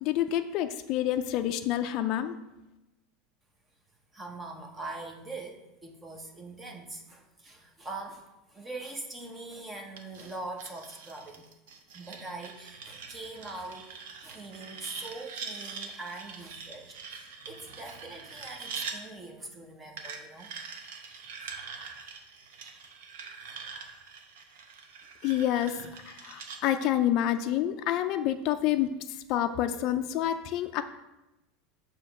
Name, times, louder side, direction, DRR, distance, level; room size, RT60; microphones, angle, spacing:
voice 1, 0.0-2.3 25.2-30.8, left 11 dB, 40° left, 8 dB, 0.3 m, -28 dB
voice 2, 4.1-11.4 11.9-20.5, right 2 dB, 10° right, 3 dB, 0.7 m, -42 dB
sound 1, 10.0-19.0 20.0-26.6, right 5 dB, 80° right, 0.8 m, -43 dB
7.4 x 2.8 x 5.8 m, 0.97 s
supercardioid pair, 170°, 0 cm